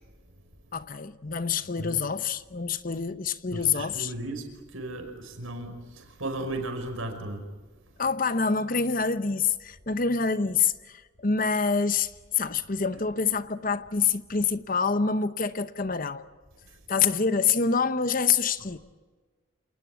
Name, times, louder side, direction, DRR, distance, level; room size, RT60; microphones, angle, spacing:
voice 1, 0.7-4.1 8.0-16.2 16.9-18.8, left 5 dB, 40° left, 0.9 m, -26 dB
voice 2, 3.5-7.5, right 2 dB, 75° right, 5.3 m, -35 dB
28.0 x 19.5 x 8.5 m
head